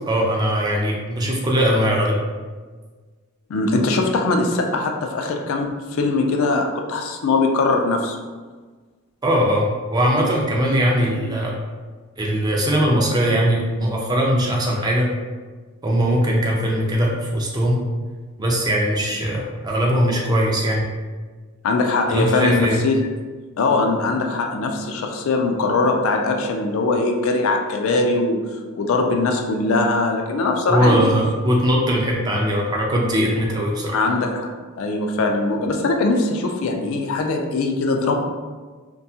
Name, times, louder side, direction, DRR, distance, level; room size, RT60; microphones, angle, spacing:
voice 1, 0.1-2.2 9.2-11.6 12.2-15.1 15.8-17.8 18.4-20.9 22.1-22.8 30.7-34.0, equal, 20° right, -2 dB, 0.3 m, -20 dB
voice 2, 3.5-8.2 19.1-19.2 21.6-23.0 23.6-31.1 33.9-34.5 34.8-38.1, left 3 dB, 65° left, 3 dB, 0.3 m, -21 dB
2.6 x 2.2 x 2.7 m, 1.4 s
head